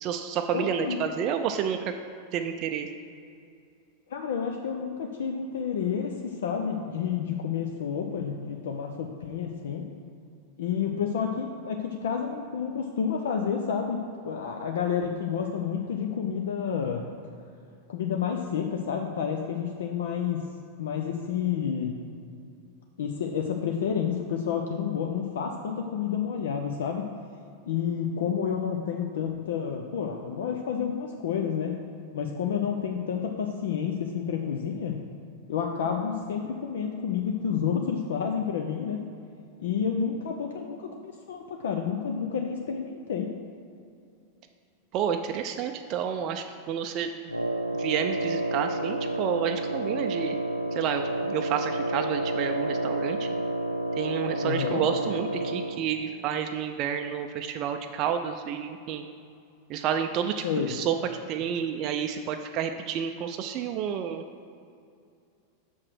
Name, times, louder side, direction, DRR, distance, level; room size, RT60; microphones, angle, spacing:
voice 1, 0.0-1.9 2.3-2.9 44.9-47.1 47.8-50.4 50.7-53.3 54.0-59.1 59.7-61.0 61.3-64.2, right 8 dB, 40° right, 5 dB, 0.4 m, -30 dB
voice 2, 0.5-1.1 4.1-9.9 10.6-17.0 17.9-20.4 20.8-22.0 23.0-27.1 27.7-31.7 32.1-34.9 35.5-39.0 39.6-43.4 54.4-54.8 60.4-60.7, left 7 dB, 60° left, 3 dB, 0.6 m, -30 dB
Wind instrument woodwind instrument, 47.3-55.9, right 1 dB, 90° right, 0.6 m, -30 dB
6.2 x 5.7 x 6.3 m, 2.4 s
figure-of-eight pair, 90°, 0 cm